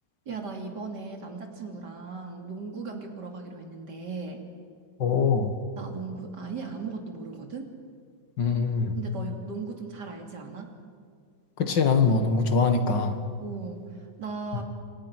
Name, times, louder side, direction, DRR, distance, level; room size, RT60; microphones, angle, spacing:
voice 1, 0.3-4.4 5.8-7.7 8.9-10.7 13.4-14.6, right 4 dB, 70° right, 3 dB, 3.5 m, -37 dB
voice 2, 5.0-5.5 8.4-8.9 11.6-13.2, left 5 dB, 85° left, 7 dB, 2.5 m, -23 dB
30.0 x 24.5 x 6.2 m, 2.1 s
omnidirectional pair, 1.9 m